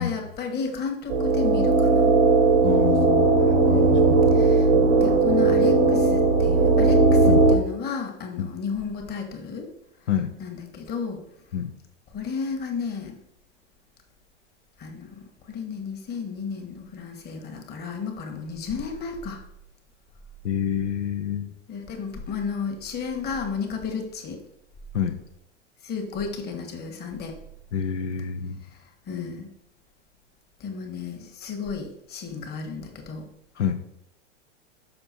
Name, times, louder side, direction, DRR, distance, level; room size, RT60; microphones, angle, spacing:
voice 1, 0.0-2.2 3.7-4.7 5.0-9.7 10.4-11.2 12.1-13.1 14.8-15.2 15.5-19.4 21.7-24.4 25.8-27.4 29.1-29.5 30.6-33.3, left 5 dB, 25° left, 3 dB, 1.6 m, -33 dB
sound 1, 1.1-7.6, right 3 dB, 85° right, 1.3 m, -18 dB
voice 2, 2.6-3.3 4.7-4.9 7.2-7.4 8.4-8.5 10.1-10.3 11.5-11.7 20.4-21.5 24.9-25.2 27.7-28.6 33.6-33.8, left 8 dB, 70° left, 5 dB, 0.8 m, -27 dB
6.9 x 5.5 x 4.3 m, 0.77 s
hypercardioid pair, 110°, 36 cm